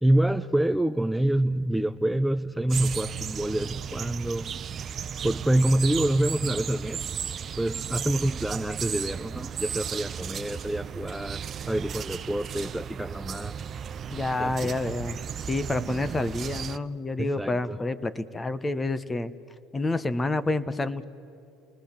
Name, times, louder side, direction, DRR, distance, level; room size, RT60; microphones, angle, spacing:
voice 1, 0.0-4.6 5.2-7.0 7.6-13.6 14.4-14.7 17.2-17.8, right 1 dB, 5° right, 10 dB, 0.5 m, -27 dB
sound 1, 2.7-16.8, right 7 dB, 45° right, 0.7 m, -35 dB
voice 2, 14.1-19.3 19.7-21.0, left 2 dB, 20° left, 15 dB, 1.1 m, -29 dB
28.5 x 20.0 x 7.4 m, 2.7 s
hypercardioid pair, 75°, 0 cm